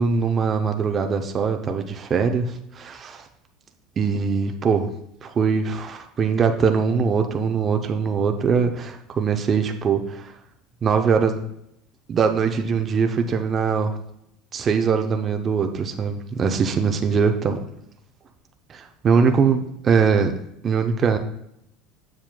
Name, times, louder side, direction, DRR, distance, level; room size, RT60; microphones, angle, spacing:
voice 1, 0.0-3.2 4.0-4.9 5.2-10.3 10.8-11.4 12.1-14.0 14.5-17.6 18.7-21.2, right 5 dB, 35° right, 5 dB, 0.6 m, -22 dB
7.4 x 7.2 x 2.2 m, 0.77 s
supercardioid pair, 115°, 0 cm